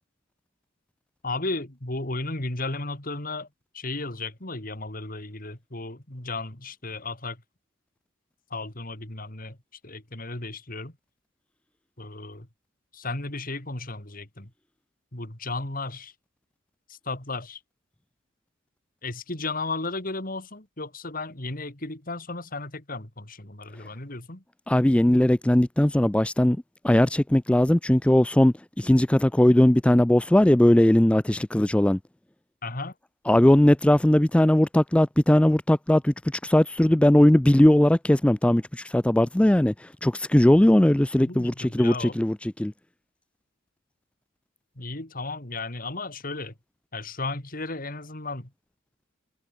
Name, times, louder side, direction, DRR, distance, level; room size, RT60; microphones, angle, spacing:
voice 1, 1.2-3.5 3.7-7.4 8.5-9.6 9.8-10.9 12.0-12.5 12.9-14.5 15.1-16.1 16.9-17.6 19.0-24.4 32.6-32.9 41.2-42.2 44.8-46.5 46.9-48.5, left 3 dB, 45° left, 3.4 m, -34 dB
voice 2, 24.7-26.6 26.8-32.0 33.3-36.1 36.4-39.7 40.0-42.7, left 1 dB, 5° left, 0.3 m, -19 dB
head